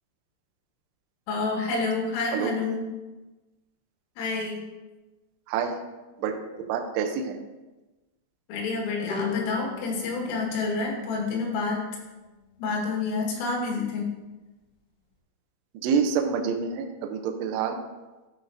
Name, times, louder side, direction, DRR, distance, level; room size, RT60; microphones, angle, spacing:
voice 1, 1.3-2.9 4.2-4.6 8.5-11.9 12.6-14.1, left 4 dB, 90° left, -1 dB, 4.2 m, -28 dB
voice 2, 5.5-5.8 6.2-7.4 15.7-17.8, right 6 dB, 90° right, 5 dB, 2.3 m, -27 dB
Bowed string instrument, 9.1-12.2, left 5 dB, 70° left, 1.5 m, -40 dB
14.0 x 5.6 x 2.6 m, 1.1 s
omnidirectional pair, 5.8 m